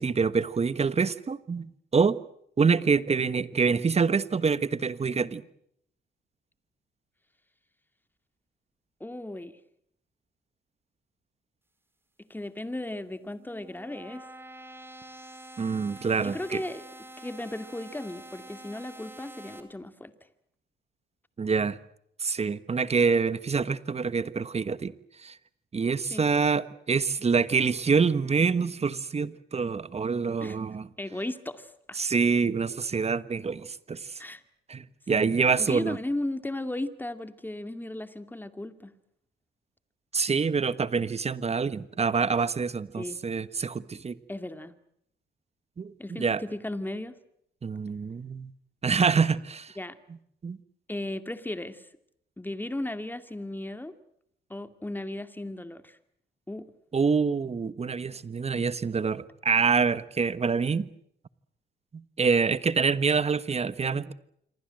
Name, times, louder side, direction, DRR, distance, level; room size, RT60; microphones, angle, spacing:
voice 1, 0.0-2.2 2.6-5.4 15.6-16.6 21.4-21.8 22.2-24.9 25.2-25.3 25.7-30.9 32.0-34.2 34.7-36.0 40.1-44.2 45.8-46.4 47.6-48.5 48.8-49.7 50.4-50.6 56.9-60.9 62.2-64.1, right 5 dB, 30° right, 15 dB, 1.3 m, -26 dB
voice 2, 9.0-9.6 12.3-14.2 16.2-16.8 17.2-20.1 26.1-26.2 30.4-30.6 31.0-32.0 34.2-34.4 35.1-35.3 35.6-38.9 43.0-43.2 44.3-44.7 46.0-47.1 49.8-50.0 50.9-51.8 52.4-53.9 54.5-56.0 56.5-56.7, left 1 dB, 10° left, 10 dB, 2.4 m, -35 dB
sound 1, 13.1-19.6, right 1 dB, 10° right, 4.4 m, -47 dB
27.0 x 24.0 x 7.8 m, 0.73 s
cardioid pair, 90°, 20 cm